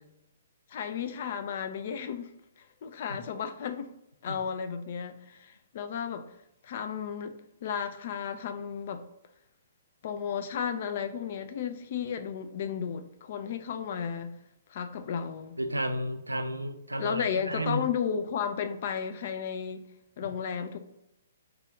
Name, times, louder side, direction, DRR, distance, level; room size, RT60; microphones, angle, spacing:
voice 1, 0.7-3.9 4.2-6.3 6.6-9.0 10.0-14.3 14.7-15.6 17.0-19.8 20.2-20.8, left 7 dB, 45° left, 0.3 m, -34 dB
voice 2, 15.6-17.8, equal, 80° right, 0.4 m, -32 dB
3.3 x 2.3 x 3.7 m
figure-of-eight pair, 120°, 0 cm